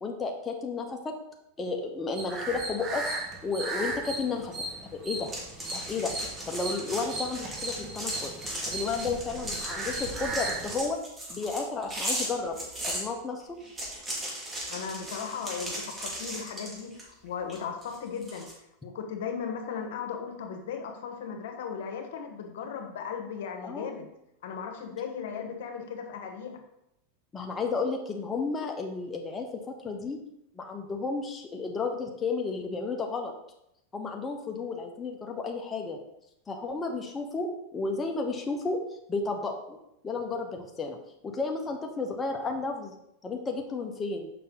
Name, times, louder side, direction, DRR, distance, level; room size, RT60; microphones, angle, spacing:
voice 1, 0.0-1.1 1.6-3.0 3.4-4.6 4.8-5.3 5.7-6.1 6.5-8.3 8.7-11.0 11.3-12.6 12.9-13.6 23.6-23.9 27.3-29.5 29.8-30.2 30.5-33.3 33.9-36.0 36.5-38.8 39.1-39.8 40.0-41.0 41.2-42.9 43.2-44.3, left 4 dB, 20° left, 2 dB, 0.9 m, -32 dB
sound 1, 2.1-10.8, right 2 dB, 35° right, 1.8 m, -36 dB
sound 2, 5.3-13.0 13.6-17.1 17.5-18.5, right 1 dB, 20° right, 2.2 m, -37 dB
voice 2, 14.7-18.5 18.8-24.1 24.4-26.6, left 6 dB, 75° left, 4 dB, 1.3 m, -37 dB
6.7 x 5.4 x 3.9 m, 0.82 s
supercardioid pair, 125°, 0 cm